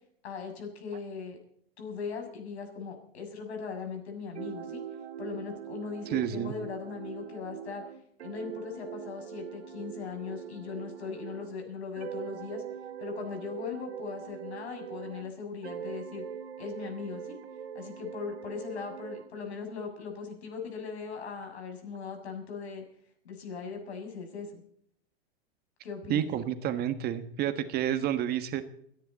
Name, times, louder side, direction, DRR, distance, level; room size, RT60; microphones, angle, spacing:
voice 1, 0.2-1.4 1.8-4.8 5.2-7.8 8.2-12.6 13.0-16.2 16.6-17.4 17.7-22.8 23.2-24.6 25.8-26.3, left 5 dB, 80° left, 4 dB, 6.7 m, -39 dB
sound 1, 4.4-11.6 12.0-15.3 15.6-19.3, right 8 dB, 85° right, 2.5 m, -42 dB
voice 2, 6.1-6.5 26.1-28.6, right 10 dB, 30° right, 10 dB, 1.4 m, -30 dB
30.0 x 10.5 x 4.1 m, 0.69 s
hypercardioid pair, 130°, 32 cm